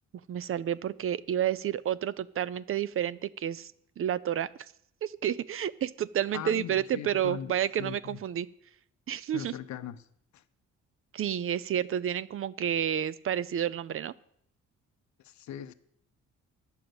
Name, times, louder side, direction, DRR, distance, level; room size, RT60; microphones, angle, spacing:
voice 1, 0.3-4.5 5.0-8.5 9.1-9.5 11.1-14.1, right 10 dB, 45° right, 0.5 m, -30 dB
voice 2, 6.3-7.5 7.8-8.2 9.3-10.0 15.2-15.7, left 10 dB, 70° left, 0.7 m, -39 dB
10.0 x 6.9 x 7.8 m
cardioid pair, 90°, 30 cm